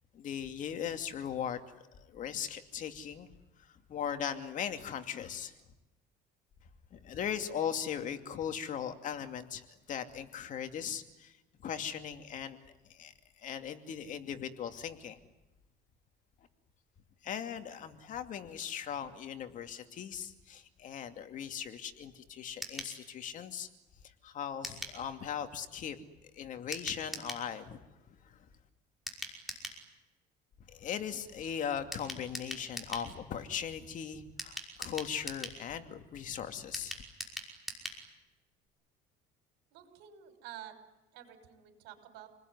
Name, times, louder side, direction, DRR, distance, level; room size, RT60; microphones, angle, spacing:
voice 1, 0.1-1.6 2.0-3.3 3.6-5.5 6.9-11.4 11.6-15.2 17.2-23.7 24.0-26.0 26.3-27.9 28.2-28.4 30.7-37.0, left 8 dB, 50° left, 7 dB, 2.6 m, -39 dB
sound 1, 22.6-22.9 24.6-25.0 26.7-27.4 29.1-29.8 31.9-33.1 34.4-35.6 36.7-38.0 38.3-38.4 38.7-38.8, right 1 dB, ahead, 5.6 m, -41 dB
voice 2, 39.7-40.8 41.1-42.3, right 11 dB, 80° right, 7 dB, 6.3 m, -50 dB
29.0 x 20.5 x 9.7 m, 1.0 s
cardioid pair, 130°, 18 cm